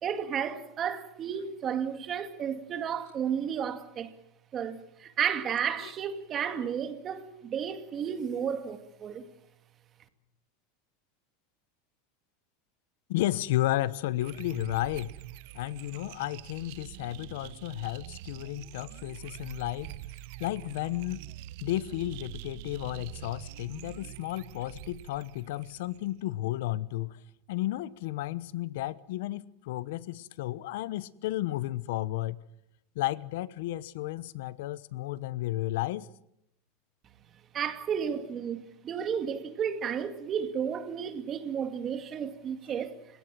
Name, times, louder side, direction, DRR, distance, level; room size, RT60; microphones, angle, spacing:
voice 1, 0.0-4.1 4.5-9.3 37.5-43.0, right 8 dB, 30° right, 2.2 m, -32 dB
voice 2, 13.1-15.1 15.5-19.9 20.4-21.3 21.6-27.2 27.5-32.4 32.9-36.1, left 16 dB, 75° left, 1.0 m, -33 dB
sound 1, 14.2-26.2, right 15 dB, 65° right, 1.0 m, -45 dB
29.5 x 17.0 x 7.6 m
supercardioid pair, 135°, 0 cm